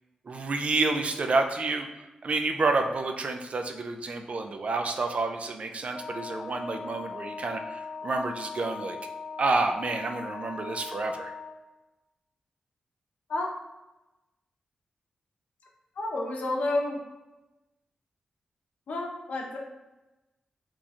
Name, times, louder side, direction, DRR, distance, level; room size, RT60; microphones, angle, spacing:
voice 1, 0.3-1.9 2.2-9.0 9.4-11.3, right 3 dB, 55° right, 4 dB, 0.4 m, -29 dB
Wind instrument woodwind instrument, 5.9-11.7, left 5 dB, 30° left, 0.6 m, -39 dB
voice 2, 16.0-17.0 18.9-19.6, left 2 dB, 75° left, 0 dB, 0.7 m, -30 dB
3.0 x 2.4 x 4.1 m, 1.0 s
cardioid pair, 60°, 3 cm